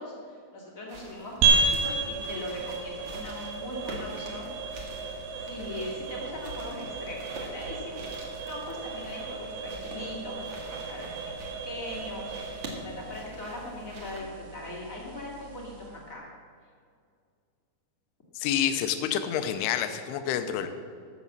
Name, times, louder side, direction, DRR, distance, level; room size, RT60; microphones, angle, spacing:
voice 1, 0.0-4.5 5.4-8.0 8.5-11.3 11.6-16.2, left 1 dB, 35° left, -3 dB, 1.2 m, -40 dB
sound 1, 0.9-14.2, right 1 dB, 55° right, 1.3 m, -45 dB
sound 2, 1.4-16.0, right 3 dB, 75° right, 3.4 m, -33 dB
voice 2, 18.3-20.7, left 9 dB, 80° left, 8 dB, 2.6 m, -28 dB
13.0 x 7.3 x 7.3 m, 2.2 s
omnidirectional pair, 5.2 m